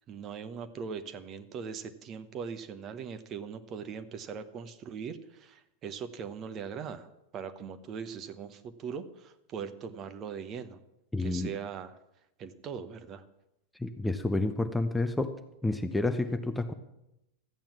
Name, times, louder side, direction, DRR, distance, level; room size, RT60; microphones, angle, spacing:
voice 1, 0.1-7.1 7.3-10.8 11.2-12.0 12.4-13.2, right 6 dB, 30° right, 10 dB, 1.0 m, -40 dB
voice 2, 11.1-11.5 13.8-15.3 15.6-16.7, left 2 dB, 5° left, 8 dB, 0.8 m, -29 dB
14.0 x 8.9 x 7.3 m, 0.86 s
figure-of-eight pair, 90°, 0 cm